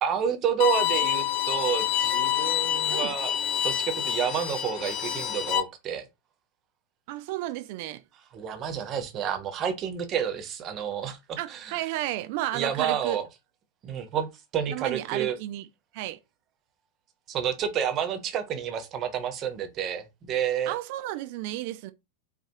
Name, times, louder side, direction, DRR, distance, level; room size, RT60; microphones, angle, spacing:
voice 1, 0.0-3.3 3.6-6.0 8.3-11.8 12.5-13.3 13.8-15.4 17.3-20.7, right 8 dB, 30° right, 0.7 m, -29 dB
Bowed string instrument, 0.6-5.6, left 11 dB, 45° left, 0.5 m, -27 dB
voice 2, 7.1-8.0 11.4-13.2 14.7-15.7 15.9-16.2 20.7-21.9, right 15 dB, 45° right, 0.4 m, -32 dB
4.1 x 2.3 x 2.7 m
figure-of-eight pair, 90°, 0 cm